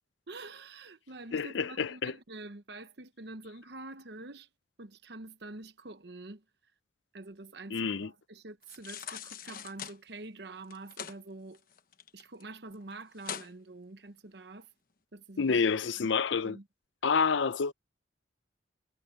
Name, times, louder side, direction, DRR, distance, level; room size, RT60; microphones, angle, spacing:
voice 1, 0.3-4.5 4.8-6.4 7.1-11.6 12.1-14.7 15.1-16.1 16.4-16.7, right 2 dB, 65° right, 1.0 m, -46 dB
voice 2, 1.3-2.1 7.7-8.1 15.4-16.6 17.0-17.7, left 5 dB, 85° left, 0.6 m, -28 dB
sound 1, 8.6-10.0 10.6-11.2 11.5-12.4 12.7-12.8 13.2-13.5 14.0-14.1, left 8 dB, 50° left, 1.2 m, -42 dB
head